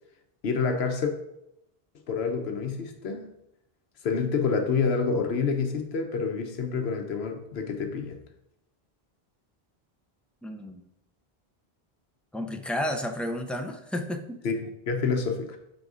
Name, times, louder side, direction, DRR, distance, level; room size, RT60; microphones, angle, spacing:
voice 1, 0.4-1.1 2.1-3.3 4.0-8.2 14.4-15.6, left 5 dB, 85° left, 5 dB, 1.0 m, -28 dB
voice 2, 10.4-10.8 12.3-14.4, left 1 dB, ahead, 4 dB, 0.3 m, -32 dB
6.7 x 3.9 x 4.8 m, 0.83 s
omnidirectional pair, 1.0 m